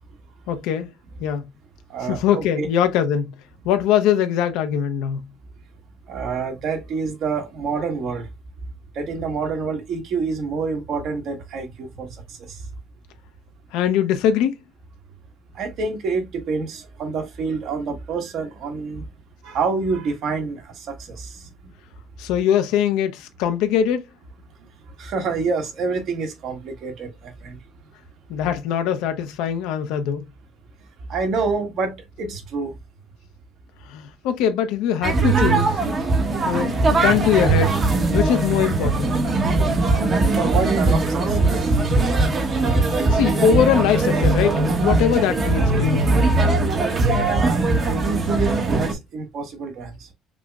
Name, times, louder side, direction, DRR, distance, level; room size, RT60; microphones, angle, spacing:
voice 1, 0.5-0.9 1.2-1.5 2.1-3.3 3.6-5.2 13.7-14.6 22.2-24.1 28.3-30.2 33.9-35.7 36.4-37.8 38.1-39.2 43.1-46.1, left 9 dB, 90° left, 0.5 m, -21 dB
voice 2, 1.9-2.7 6.1-8.3 8.9-12.6 15.5-19.1 19.4-21.5 25.0-27.6 31.1-32.8 40.3-42.0 47.2-50.1, right 4 dB, 55° right, 1.3 m, -28 dB
sound 1, 35.0-48.9, right 3 dB, 30° right, 0.9 m, -20 dB
5.9 x 2.0 x 2.2 m
cardioid pair, 135°, 0 cm